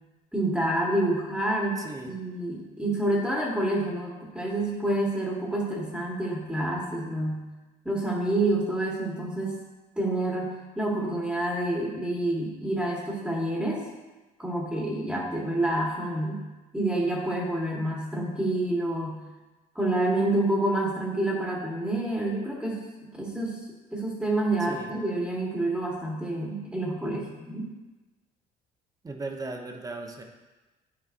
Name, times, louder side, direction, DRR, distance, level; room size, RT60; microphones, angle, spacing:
voice 1, 0.3-7.4 7.8-9.5 10.0-13.8 14.4-16.4 16.7-19.2 19.7-22.8 23.1-23.6 23.9-27.7, right 1 dB, 5° right, -3 dB, 1.3 m, -28 dB
voice 2, 1.8-2.1 24.7-24.9 29.0-30.2, right 3 dB, 20° right, 3 dB, 0.9 m, -37 dB
11.0 x 4.5 x 2.5 m, 1.2 s
cardioid pair, 110°, 17 cm